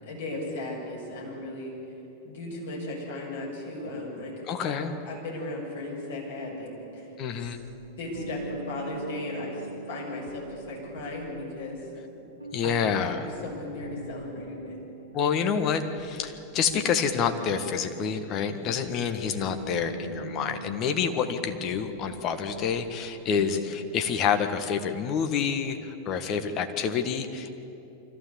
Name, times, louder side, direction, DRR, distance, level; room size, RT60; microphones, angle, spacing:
voice 1, 0.0-1.7 2.2-4.3 4.6-7.1 7.4-7.5 8.0-11.9 12.2-12.3 12.6-14.8 18.5-18.8 23.2-23.5, left 2 dB, 60° left, -3 dB, 6.9 m, -36 dB
voice 2, 4.5-4.9 7.2-7.6 12.5-13.3 15.1-27.5, left 7 dB, 35° left, 7 dB, 1.6 m, -28 dB
sound 1, 6.4-24.7, right 3 dB, 85° right, 1.1 m, -44 dB
24.0 x 15.0 x 8.4 m, 2.9 s
figure-of-eight pair, 90°, 0 cm